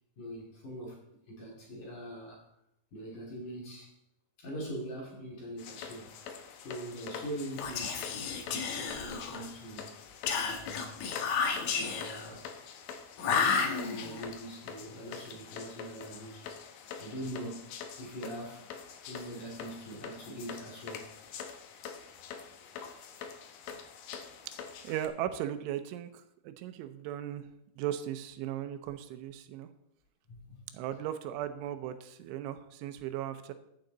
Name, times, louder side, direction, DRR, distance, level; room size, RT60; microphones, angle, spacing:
voice 1, 0.2-1.0 1.3-2.4 2.9-3.9 4.4-6.1 6.6-8.1 8.5-10.0 10.4-10.9 11.6-12.5 13.2-16.5 17.0-17.7 18.0-18.7 19.1-21.7 30.3-30.7, right 1 dB, 50° left, 3.5 m, -43 dB
sound 1, 5.6-25.1, left 7 dB, 85° left, 1.9 m, -45 dB
Whispering, 7.5-9.5 10.3-12.3 13.2-14.2, left 6 dB, 65° left, 2.5 m, -32 dB
voice 2, 24.8-27.5 27.8-29.7 30.7-33.5, right 11 dB, 85° right, 3.2 m, -37 dB
14.5 x 8.3 x 3.9 m
omnidirectional pair, 5.4 m